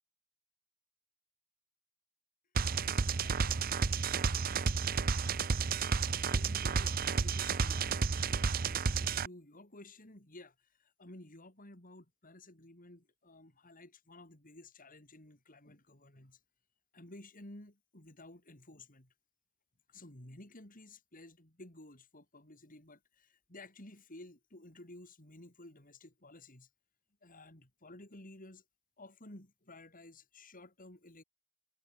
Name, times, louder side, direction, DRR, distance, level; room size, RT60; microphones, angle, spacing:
sound 1, 2.6-9.3, right 5 dB, 45° right, 0.7 m, -31 dB
voice 1, 2.8-3.5 3.8-4.6 6.1-10.5 10.8-16.4 16.9-19.1 19.9-26.7 27.2-28.6 29.0-31.2, left 1 dB, 40° left, 5.0 m, -54 dB
head